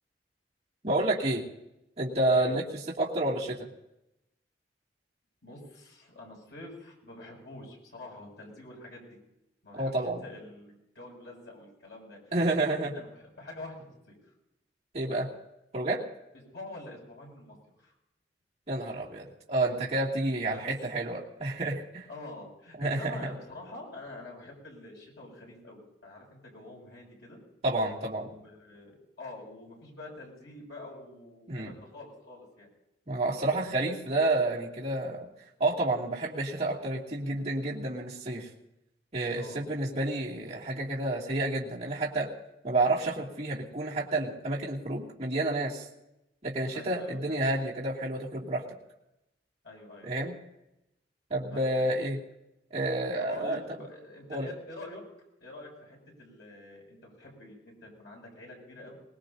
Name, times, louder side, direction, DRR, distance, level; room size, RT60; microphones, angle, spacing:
voice 1, 0.8-1.4 2.0-2.6 3.0-3.7 9.7-10.2 12.3-12.9 14.9-15.3 15.7-16.0 18.7-22.0 22.8-23.2 27.6-28.3 31.5-31.7 33.1-35.3 35.6-38.5 39.1-42.3 42.6-45.9 46.4-48.6 50.0-50.3 51.3-52.2 52.7-53.6 54.3-54.4, right 2 dB, 40° right, -6 dB, 2.7 m, -29 dB
voice 2, 5.4-9.0 9.6-14.2 16.5-17.9 20.5-20.6 22.1-27.4 28.1-32.7 34.0-34.5 39.3-39.6 46.7-47.4 49.6-50.1 51.5-51.9 53.2-55.0 55.4-59.0, left 2 dB, 75° left, -1 dB, 7.2 m, -46 dB
23.0 x 19.5 x 2.8 m, 0.89 s
head